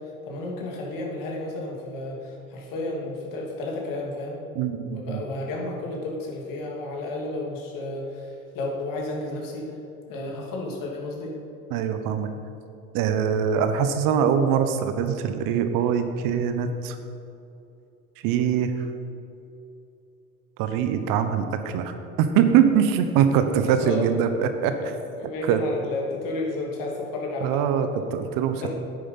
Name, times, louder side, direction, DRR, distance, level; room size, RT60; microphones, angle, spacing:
voice 1, 0.3-4.4 4.9-8.3 8.5-9.6 10.1-11.3 23.6-24.1 24.8-24.9 25.2-27.6 28.5-28.7, left 2 dB, 50° left, -1 dB, 2.8 m, -32 dB
voice 2, 4.5-5.2 11.7-12.3 12.9-17.0 18.2-18.9 20.6-24.9 25.4-25.6 27.4-28.7, right 8 dB, 50° right, 8 dB, 1.0 m, -23 dB
9.7 x 8.6 x 5.6 m, 2.8 s
hypercardioid pair, 80°, 43 cm